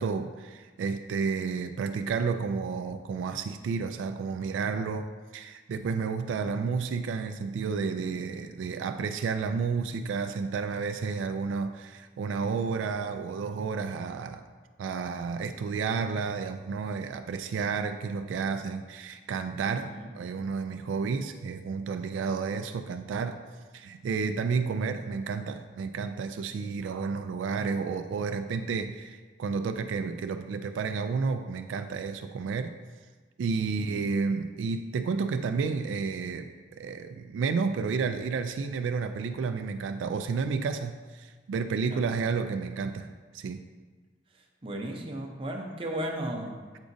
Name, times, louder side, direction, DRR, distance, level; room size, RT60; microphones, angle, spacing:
voice 1, 0.0-14.5 14.8-23.4 23.7-32.7 33.4-43.1 43.3-43.6, right 5 dB, 80° right, 8 dB, 0.3 m, -31 dB
voice 2, 19.8-20.1 33.6-34.0 41.9-42.2 44.6-46.8, right 1 dB, 30° right, 1 dB, 0.6 m, -36 dB
8.0 x 4.9 x 2.6 m, 1.4 s
head